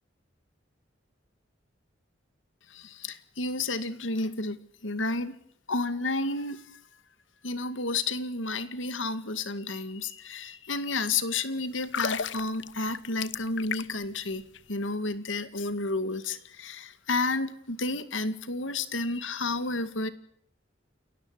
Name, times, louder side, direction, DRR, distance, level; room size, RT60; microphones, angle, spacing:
voice 1, 2.7-4.6 4.8-5.4 5.7-6.8 7.4-14.4 14.7-20.1, left 3 dB, 85° left, 12 dB, 2.3 m, -31 dB
sound 1, 11.8-14.1 14.4-14.6, left 6 dB, 70° left, 0.9 m, -33 dB
29.5 x 13.5 x 9.6 m, 0.67 s
head